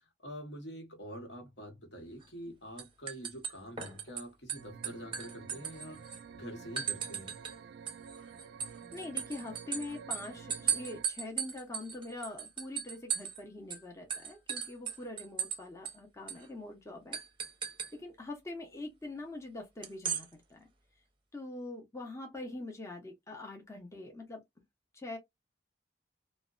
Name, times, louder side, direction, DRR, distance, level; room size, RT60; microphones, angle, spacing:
voice 1, 0.2-7.3, equal, 70° left, 1.0 m, -46 dB
sound 1, 2.2-2.5 2.8-4.2 4.5-6.2 6.8-7.6 7.9-13.4 13.7-13.8 14.1-15.6 15.8-15.9 16.3-16.4 17.1-17.9 19.8-20.2, right 8 dB, 30° right, 0.6 m, -36 dB
sound 2, 4.5-11.0, right 6 dB, 65° right, 0.3 m, -50 dB
voice 2, 8.9-17.2 17.9-20.6 21.3-24.4 24.9-25.2, left 2 dB, 15° left, 0.6 m, -43 dB
2.8 x 2.1 x 2.4 m
head